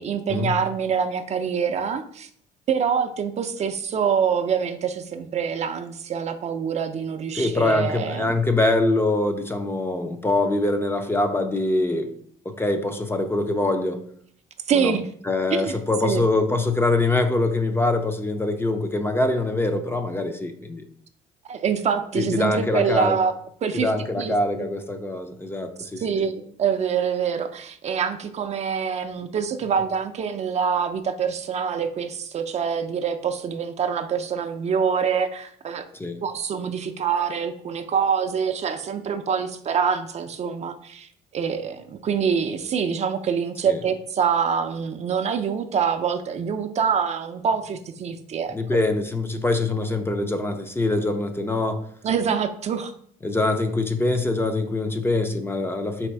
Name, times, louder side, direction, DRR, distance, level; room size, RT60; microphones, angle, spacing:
voice 1, 0.0-2.3 2.7-8.3 14.7-15.1 15.5-15.7 16.0-16.2 21.5-23.3 23.6-23.9 24.2-24.7 26.0-35.9 36.2-48.6 52.0-52.9, right 7 dB, 40° right, 8 dB, 0.4 m, -25 dB
voice 2, 7.3-12.1 12.5-14.0 14.7-14.9 15.2-20.8 22.1-23.2 23.7-26.0 35.9-36.2 43.7-43.8 48.5-51.8 53.2-56.1, left 2 dB, 15° left, 7 dB, 0.5 m, -24 dB
4.1 x 2.5 x 4.6 m, 0.63 s
cardioid pair, 110°, 17 cm